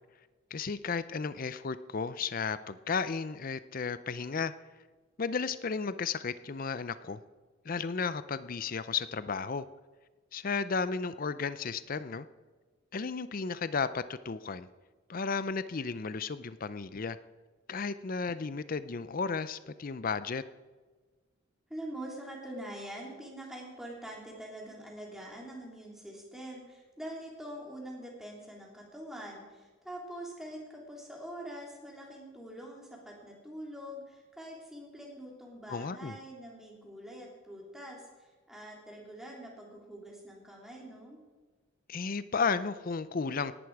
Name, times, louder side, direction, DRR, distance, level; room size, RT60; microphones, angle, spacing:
voice 1, 0.5-4.5 5.2-7.2 7.6-9.7 10.3-12.3 12.9-14.7 15.1-17.2 17.7-20.4 35.7-36.2 41.9-43.5, left 5 dB, 40° left, 14 dB, 0.5 m, -33 dB
voice 2, 21.7-41.2, right 1 dB, ahead, -2 dB, 3.1 m, -44 dB
18.0 x 11.5 x 4.7 m, 1.3 s
head